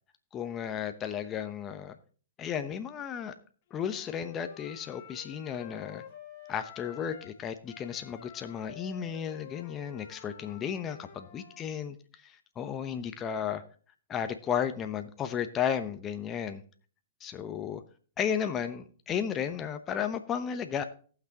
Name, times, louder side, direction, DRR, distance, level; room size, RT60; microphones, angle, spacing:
voice 1, 0.3-2.0 2.4-3.3 3.7-6.0 6.5-12.0 12.2-13.6 14.1-16.6 17.2-17.8 18.2-20.8, left 8 dB, 25° left, 8 dB, 0.9 m, -34 dB
Wind instrument woodwind instrument, 3.7-7.4 7.6-11.6, left 9 dB, 50° left, 1.3 m, -50 dB
18.0 x 6.1 x 2.9 m, 0.42 s
hypercardioid pair, 120°, 0 cm